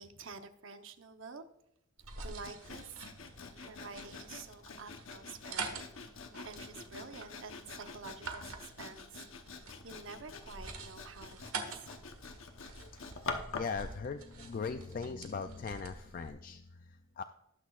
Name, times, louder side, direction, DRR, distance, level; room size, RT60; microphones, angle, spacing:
voice 1, 0.0-1.5 2.2-3.1 3.5-6.2 6.4-9.3 9.6-12.0, right 4 dB, 65° right, 8 dB, 0.8 m, -49 dB
sound 1, 2.0-16.3, right 4 dB, 85° right, 1.4 m, -47 dB
Sawing, 2.4-13.8, left 4 dB, 70° left, 0.9 m, -46 dB
voice 2, 12.8-17.2, left 5 dB, 40° left, 8 dB, 0.3 m, -40 dB
19.0 x 6.3 x 2.4 m, 0.80 s
head